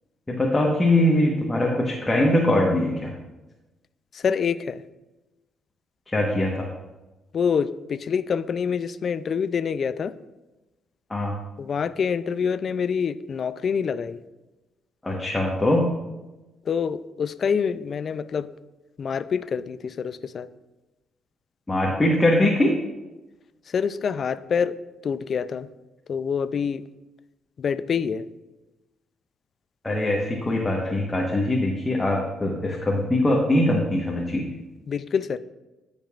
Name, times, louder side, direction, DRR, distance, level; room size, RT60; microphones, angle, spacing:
voice 1, 0.3-3.1 6.1-6.7 11.1-11.3 15.0-15.9 21.7-22.7 29.8-34.4, left 1 dB, 15° left, -2 dB, 1.2 m, -22 dB
voice 2, 4.1-4.8 7.3-10.1 11.6-14.2 16.7-18.5 19.0-20.5 23.7-24.8 25.0-25.7 26.1-26.8 27.6-28.3 34.9-35.4, left 6 dB, 50° left, 14 dB, 0.4 m, -26 dB
14.5 x 5.3 x 2.5 m, 1.1 s
cardioid pair, 90°, 0 cm